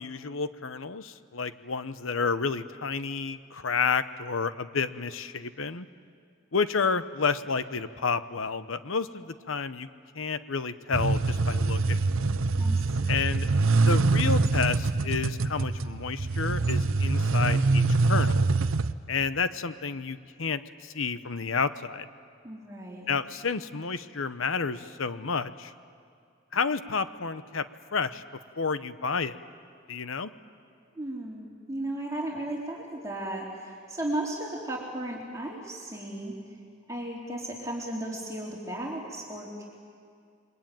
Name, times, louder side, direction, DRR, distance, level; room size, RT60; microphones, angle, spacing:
voice 1, 0.0-5.9 6.5-9.9 10.1-12.0 13.1-13.5 13.8-17.8 18.1-18.5 19.1-22.1 23.1-25.7 26.5-27.6 27.9-28.2 28.6-29.4 29.9-30.3, left 5 dB, 75° left, 12 dB, 0.9 m, -30 dB
sound 1, 10.9-18.9, right 3 dB, 80° right, 0.7 m, -24 dB
voice 2, 12.6-13.2 22.4-23.2 31.0-36.4 36.9-39.6, right 1 dB, 15° right, -3 dB, 3.3 m, -35 dB
28.0 x 22.5 x 9.2 m, 2.2 s
head